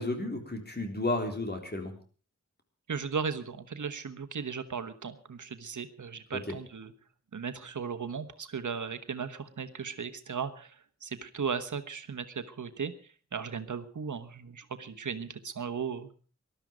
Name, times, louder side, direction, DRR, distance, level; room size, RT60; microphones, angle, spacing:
voice 1, 0.0-1.9 6.3-6.5, left 2 dB, 35° left, 5 dB, 3.6 m, -32 dB
voice 2, 2.9-6.9 7.3-12.9 13.3-16.1, right 6 dB, 85° right, 10 dB, 1.3 m, -36 dB
19.5 x 12.5 x 5.1 m, 0.39 s
wide cardioid pair, 75°, 30 cm